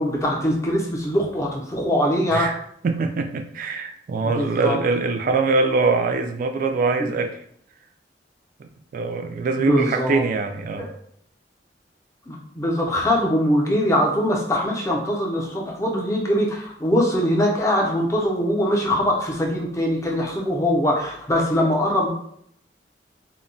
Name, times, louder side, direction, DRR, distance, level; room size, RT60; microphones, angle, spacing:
voice 1, 0.0-2.5 4.2-4.8 7.0-7.1 9.6-10.2 10.8-10.9 12.3-22.1, equal, 15° left, -1 dB, 0.6 m, -22 dB
voice 2, 2.8-7.4 8.6-10.9, right 4 dB, 50° right, 6 dB, 0.3 m, -23 dB
2.2 x 2.1 x 3.7 m, 0.68 s
head